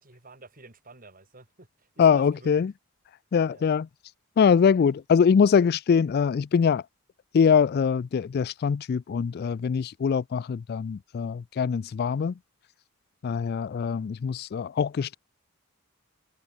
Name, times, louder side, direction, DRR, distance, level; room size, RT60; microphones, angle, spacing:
voice 1, 0.0-2.6 3.5-3.7, right 2 dB, 40° right, 3.5 m, -51 dB
voice 2, 2.0-2.7 3.3-3.9 4.4-6.8 7.3-12.3 13.2-15.2, left 6 dB, 45° left, 0.3 m, -23 dB
head